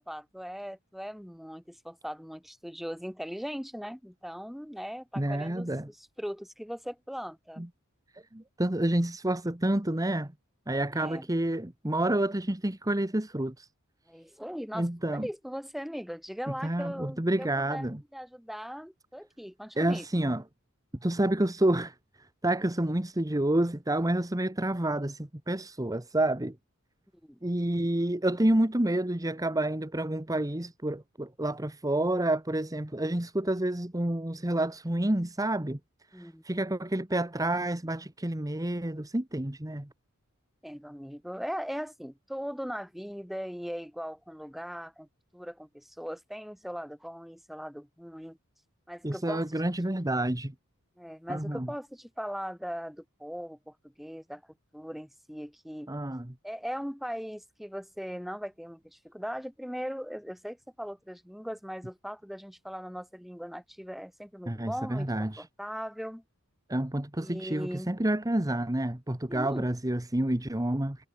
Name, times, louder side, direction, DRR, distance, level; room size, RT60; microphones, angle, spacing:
voice 1, 0.0-7.6 10.9-11.3 14.1-17.9 18.1-20.2 27.2-27.4 36.1-36.4 40.6-45.1 45.3-48.4 48.9-49.5 51.0-54.4 54.7-55.9 56.4-66.2 67.2-67.9 69.3-69.7, equal, ahead, 3.4 m, -39 dB
voice 2, 5.2-5.9 7.6-7.7 8.3-10.3 10.7-13.7 14.7-15.3 16.6-18.0 19.8-20.4 21.0-21.9 22.4-26.5 27.4-35.8 36.1-39.9 49.0-50.5 51.3-51.7 55.9-56.3 64.5-65.5 66.7-71.0, right 1 dB, 15° right, 1.3 m, -29 dB
head